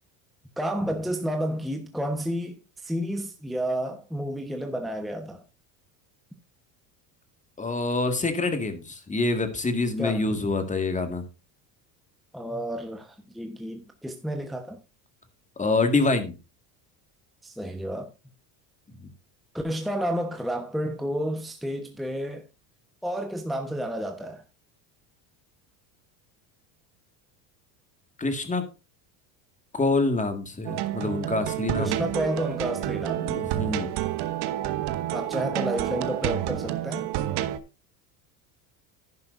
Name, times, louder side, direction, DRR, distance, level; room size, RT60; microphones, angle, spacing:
voice 1, 0.6-5.4 10.0-10.2 12.3-14.8 17.4-18.1 19.5-22.5 23.0-24.4 31.7-33.3 35.1-37.1, equal, ahead, 1.1 m, -31 dB
voice 2, 7.6-11.2 15.6-16.4 19.0-19.1 28.2-28.6 29.7-32.0 33.2-33.9, left 3 dB, 15° left, 2.0 m, -26 dB
sound 1, 30.7-37.6, right 13 dB, 60° right, 1.2 m, -29 dB
10.5 x 10.5 x 2.6 m
supercardioid pair, 115°, 47 cm